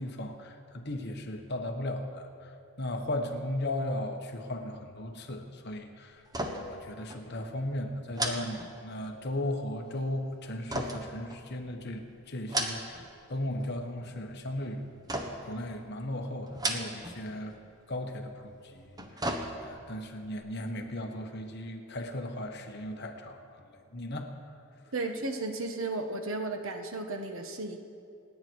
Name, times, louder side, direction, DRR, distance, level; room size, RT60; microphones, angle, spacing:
voice 1, 0.0-6.2 6.5-14.8 15.5-17.6 17.9-19.0 19.6-24.3, left 1 dB, 50° left, 4 dB, 1.3 m, -36 dB
sound 1, 6.3-6.8 7.1-7.3 8.1-9.2 10.7-11.8 12.3-13.1 13.4-14.0 15.1-15.6 16.5-17.2 17.5-17.6 18.7-19.9 20.3-20.4, right 1 dB, 15° right, 1.1 m, -35 dB
voice 2, 24.9-27.8, right 2 dB, 65° right, 5 dB, 1.3 m, -34 dB
28.0 x 9.4 x 4.7 m, 2.4 s
head